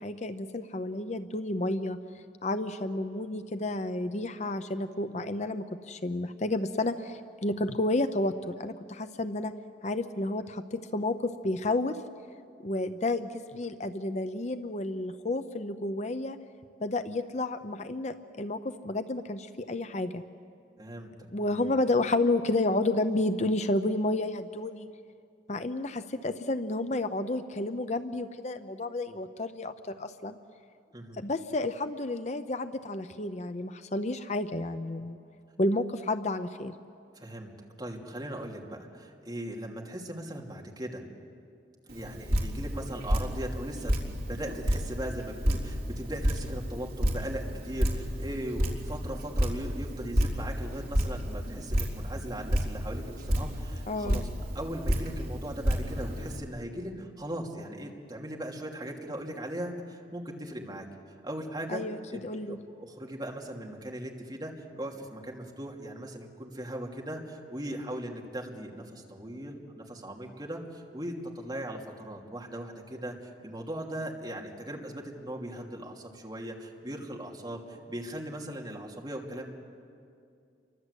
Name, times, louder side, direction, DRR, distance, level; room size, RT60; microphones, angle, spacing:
voice 1, 0.0-2.0 2.4-9.5 9.8-12.0 12.6-16.4 16.8-20.2 21.3-24.9 25.5-30.4 31.1-35.2 35.6-36.7 53.9-54.2 61.7-62.0 62.2-62.6, left 2 dB, 40° left, 10 dB, 0.7 m, -31 dB
voice 2, 20.8-21.7 30.9-31.2 37.1-37.5 37.8-41.0 41.9-54.3 54.5-60.9 61.2-61.8 62.1-79.5, right 1 dB, 25° right, 0 dB, 2.8 m, -39 dB
Drip, 41.9-56.4, equal, 55° right, 3.8 m, -31 dB
29.5 x 24.0 x 8.3 m, 2.4 s
head